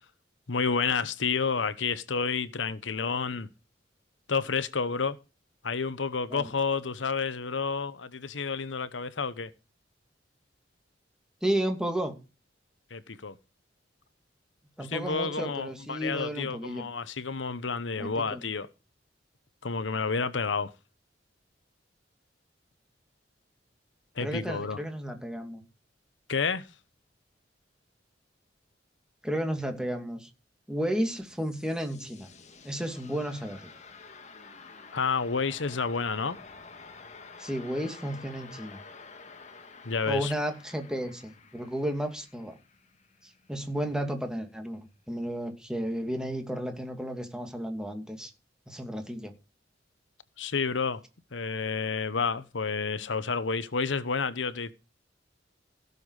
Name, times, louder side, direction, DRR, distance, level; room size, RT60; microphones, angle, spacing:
voice 1, 0.5-3.5 4.3-5.2 5.6-9.5 12.9-13.4 14.8-18.7 19.6-20.7 24.2-24.8 26.3-26.7 34.9-36.4 39.8-40.3 50.4-51.0 51.3-54.7, left 5 dB, 85° left, 1.0 m, -30 dB
voice 2, 11.4-12.1 14.8-16.9 18.0-18.4 24.2-25.6 29.2-30.3 30.7-32.3 32.6-33.7 37.4-38.8 40.1-42.6 43.5-48.3 48.7-49.3, equal, 5° right, 2.5 m, -33 dB
sound 1, 31.1-43.8, left 4 dB, 40° left, 1.9 m, -50 dB
16.5 x 6.9 x 4.8 m
head